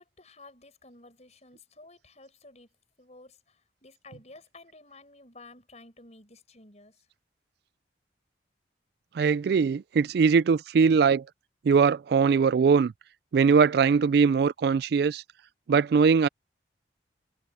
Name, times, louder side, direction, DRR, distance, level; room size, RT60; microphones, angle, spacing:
voice 1, 0.0-2.7 3.0-7.1, left 2 dB, 35° left, 7.0 m, -52 dB
voice 2, 9.2-11.2 11.6-12.9 13.3-15.2 15.7-16.3, right 5 dB, 55° right, 0.3 m, -21 dB
head